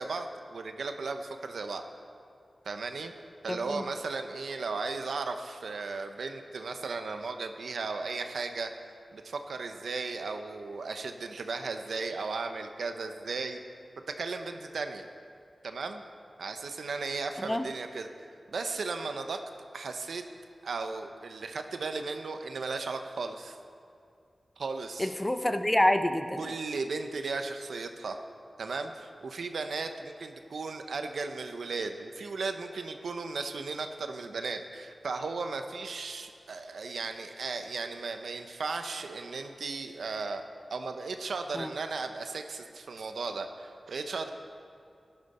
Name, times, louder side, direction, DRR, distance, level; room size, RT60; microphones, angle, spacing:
voice 1, 0.0-1.8 2.6-3.1 3.4-8.7 9.1-13.6 14.2-15.1 15.6-16.0 16.4-18.1 18.5-19.4 19.7-20.2 20.6-23.6 24.6-25.1 26.4-28.2 28.6-40.4 40.7-44.3, right 4 dB, 90° right, 6 dB, 0.8 m, -36 dB
voice 2, 3.5-3.8 17.4-17.7 25.0-26.4 41.5-41.7, left 1 dB, 20° left, 8 dB, 0.7 m, -27 dB
16.0 x 11.5 x 4.3 m, 2.5 s
cardioid pair, 60°, 0 cm